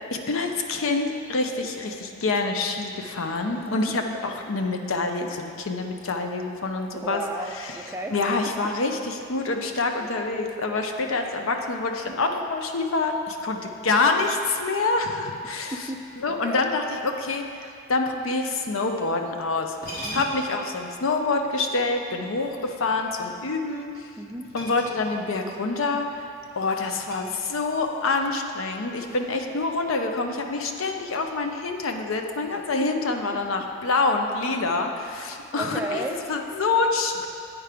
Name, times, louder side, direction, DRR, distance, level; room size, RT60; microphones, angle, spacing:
voice 1, 0.1-7.2 7.6-7.8 8.1-15.8 16.2-17.4 17.9-23.9 24.5-26.0 26.6-36.0 36.3-37.3, left 3 dB, 70° left, 4 dB, 0.6 m, -26 dB
voice 2, 3.5-3.9 6.9-8.2 15.4-16.0 16.3-16.7 20.0-20.3 24.2-24.5 32.8-33.4 35.2-36.2, right 1 dB, 10° right, 1 dB, 0.3 m, -35 dB
sound 1, 19.7-20.6 22.3-23.3 24.4-25.4 25.7-25.9 26.4-27.8, equal, 45° left, 1.4 m, -40 dB
9.0 x 4.6 x 5.0 m, 2.6 s
head